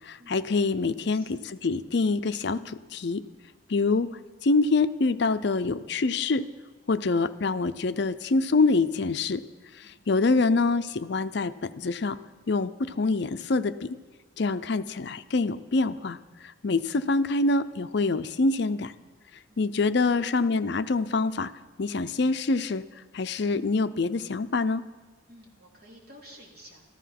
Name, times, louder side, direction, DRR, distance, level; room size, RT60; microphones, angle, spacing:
voice 1, 0.0-3.2 3.7-4.1 4.4-6.5 6.9-9.4 9.8-12.2 12.5-14.0 14.4-16.2 16.6-18.9 19.6-21.5 21.8-22.8 23.1-24.8, left 3 dB, 55° left, 12 dB, 0.5 m, -25 dB
voice 2, 25.3-26.8, equal, 50° right, -2 dB, 3.2 m, -52 dB
14.0 x 13.5 x 5.9 m, 1.3 s
head